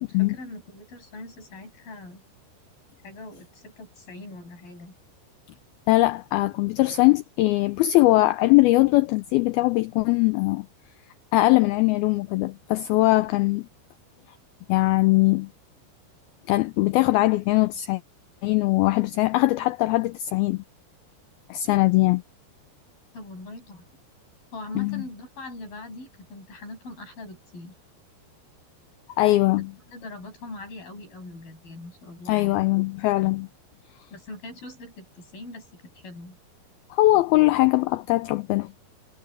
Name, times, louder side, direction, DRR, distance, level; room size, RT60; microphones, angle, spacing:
voice 1, 0.0-2.2 3.0-4.9 23.1-23.9 24.5-27.7 29.9-32.7 34.1-35.7 35.9-36.4, left 2 dB, 55° left, 9.5 m, -41 dB
voice 2, 5.9-10.7 11.3-13.6 14.7-15.5 16.5-18.0 18.4-20.6 21.5-22.2 24.8-25.0 29.2-29.7 32.3-33.5 36.9-38.7, left 19 dB, 90° left, 2.1 m, -21 dB
omnidirectional pair, 5.1 m